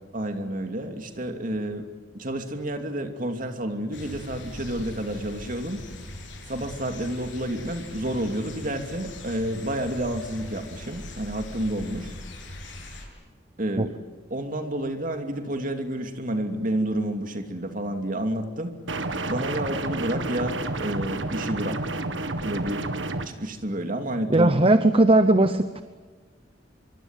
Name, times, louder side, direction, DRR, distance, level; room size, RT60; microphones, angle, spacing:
voice 1, 0.1-1.9 2.1-5.9 6.5-12.1 13.6-13.9 14.3-18.7 19.3-21.8 22.4-22.8 23.2-24.8, right 1 dB, 45° right, 6 dB, 2.9 m, -30 dB
sound 1, 3.9-13.1, left 1 dB, 75° left, 7.4 m, -41 dB
sound 2, 18.9-23.3, right 2 dB, 80° right, 1.7 m, -30 dB
voice 2, 24.3-25.8, right 2 dB, 30° right, 10 dB, 0.9 m, -18 dB
26.0 x 24.0 x 9.2 m, 1.4 s
head